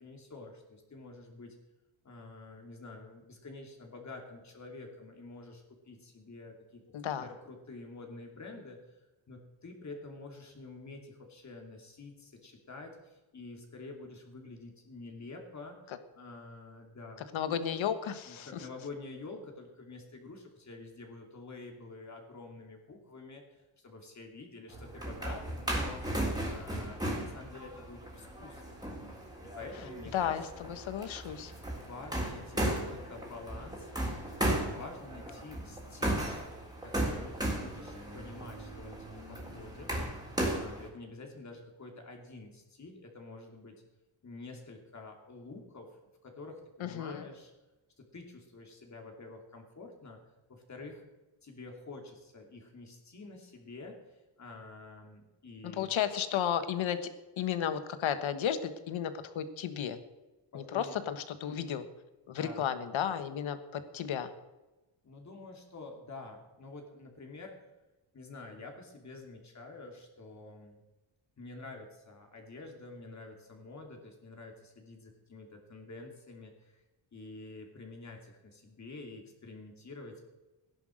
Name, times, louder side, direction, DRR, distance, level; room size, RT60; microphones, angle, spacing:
voice 1, 0.0-1.6 2.0-6.8 7.2-9.0 9.3-17.3 18.3-28.8 29.5-30.4 31.7-33.9 34.4-36.3 36.8-39.9 40.5-43.7 44.2-47.5 48.0-50.2 50.5-51.0 51.4-55.9 60.5-61.0 62.3-62.7 65.0-67.5 68.1-70.8 71.4-76.8 77.1-80.2, left 3 dB, 35° left, 2 dB, 2.9 m, -48 dB
voice 2, 6.9-7.2 17.3-18.6 30.1-31.5 46.8-47.3 55.6-57.0 57.4-60.0 60.5-61.9 62.3-64.3, left 9 dB, 80° left, 11 dB, 1.4 m, -33 dB
sound 1, 24.7-40.9, right 1 dB, 10° right, 3.6 m, -36 dB
15.5 x 11.0 x 6.4 m, 1.1 s
wide cardioid pair, 140°, 47 cm